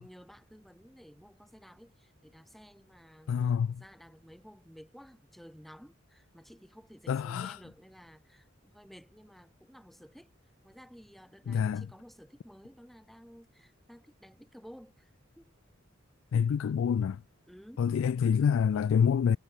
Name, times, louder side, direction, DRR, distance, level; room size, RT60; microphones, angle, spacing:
voice 1, 0.0-10.3 10.6-15.5 17.5-17.8, equal, ahead, 2.0 m, -54 dB
voice 2, 3.3-3.8 7.1-7.6 11.5-11.9 16.3-17.2 17.8-19.4, left 7 dB, 75° left, 0.3 m, -27 dB
head